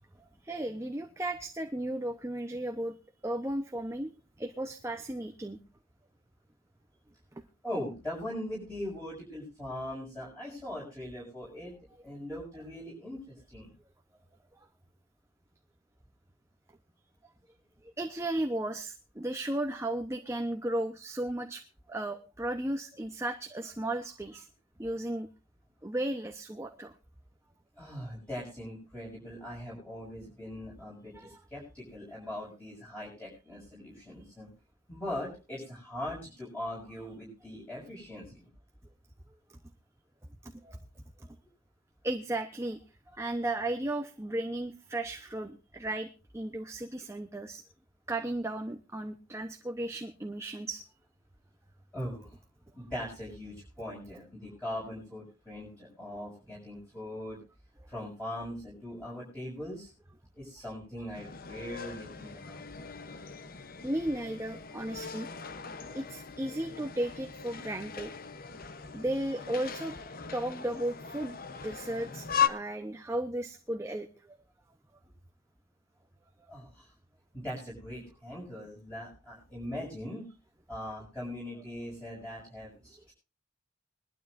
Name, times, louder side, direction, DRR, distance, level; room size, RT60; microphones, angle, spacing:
voice 1, 0.4-2.9 3.2-4.1 4.4-5.6 18.0-21.6 21.9-24.5 24.8-25.3 25.8-26.9 31.1-31.4 40.6-40.8 42.0-42.8 43.2-46.1 46.3-47.6 48.1-50.8 63.8-65.3 65.9-68.1 68.9-69.9 70.3-71.4 71.6-74.1, right 1 dB, 15° right, 5 dB, 0.8 m, -34 dB
voice 2, 7.6-11.7 12.0-13.7 27.8-34.5 34.9-38.5 51.9-52.4 52.7-57.4 57.9-59.9 60.3-62.6 76.5-76.9 77.3-80.3 80.7-83.1, left 1 dB, 5° left, -6 dB, 6.8 m, -40 dB
sound 1, 61.1-72.5, left 7 dB, 45° left, 0.9 m, -38 dB
21.5 x 12.5 x 2.6 m, 0.31 s
head